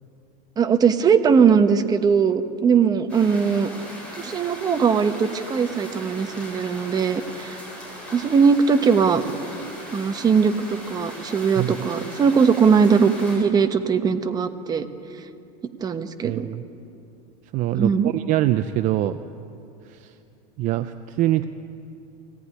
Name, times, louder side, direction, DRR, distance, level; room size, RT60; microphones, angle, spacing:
voice 1, 0.6-3.7 4.2-7.6 8.1-9.2 9.9-14.8 15.8-16.5 17.8-18.1, right 6 dB, 20° right, 8 dB, 1.2 m, -20 dB
sound 1, 3.1-13.4, equal, 5° left, 7.7 m, -39 dB
voice 2, 16.2-16.6 17.5-19.1 19.9-20.1 20.6-21.4, right 14 dB, 40° right, 11 dB, 0.7 m, -24 dB
23.0 x 18.5 x 9.8 m, 2.7 s
supercardioid pair, 150°, 20 cm